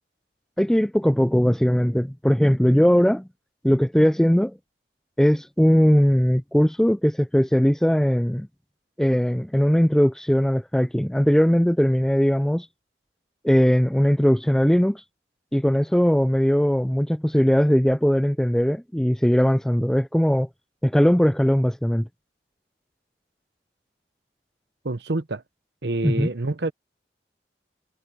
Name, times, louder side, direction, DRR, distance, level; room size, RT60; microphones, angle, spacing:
voice 1, 0.6-3.3 3.6-4.6 5.2-8.5 9.0-12.7 13.4-15.0 15.5-20.5 20.8-22.1 26.0-26.3, equal, 5° left, 0.3 m, -19 dB
voice 2, 24.8-25.4 25.8-26.7, right 2 dB, 75° right, 1.0 m, -27 dB
head